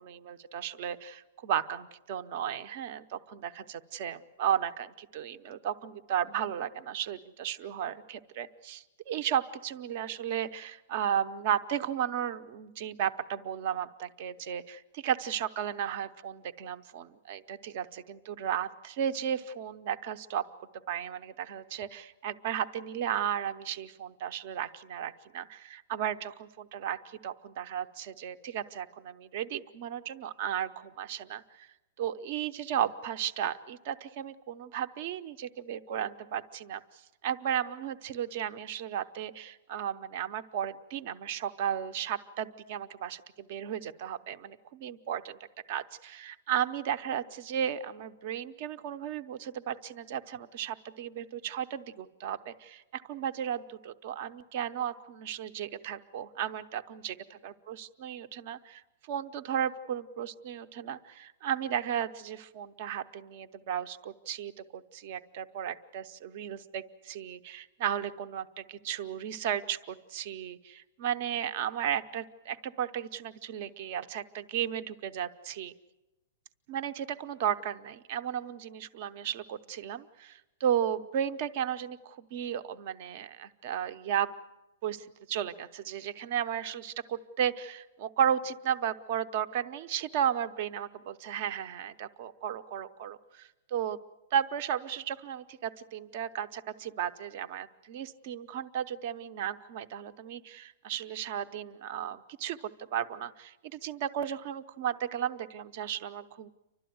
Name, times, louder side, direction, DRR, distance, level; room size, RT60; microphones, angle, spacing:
voice 1, 0.0-20.4 20.9-31.7 32.0-36.8 37.2-45.4 45.7-57.1 57.4-58.8 59.1-75.7 76.7-84.3 84.8-94.0 94.3-102.6 102.9-106.5, right 9 dB, 35° right, 12 dB, 0.7 m, -34 dB
29.5 x 12.5 x 9.4 m, 1.0 s
hypercardioid pair, 180°, 0 cm